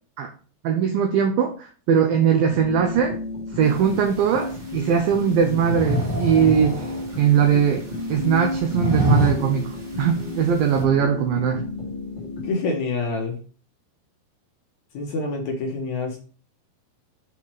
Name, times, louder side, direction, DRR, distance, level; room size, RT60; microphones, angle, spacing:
voice 1, 0.6-3.2 3.5-6.9 7.2-7.8 8.1-9.7 10.0-11.6, right 7 dB, 80° right, 4 dB, 2.1 m, -20 dB
sound 1, 2.5-12.5, left 2 dB, 25° right, 1.0 m, -32 dB
sound 2, 3.6-10.8, left 1 dB, 45° right, 1.4 m, -29 dB
voice 2, 12.4-13.3 14.9-16.2, left 3 dB, 80° left, 0 dB, 1.6 m, -26 dB
7.0 x 4.5 x 4.7 m, 0.39 s
omnidirectional pair, 5.1 m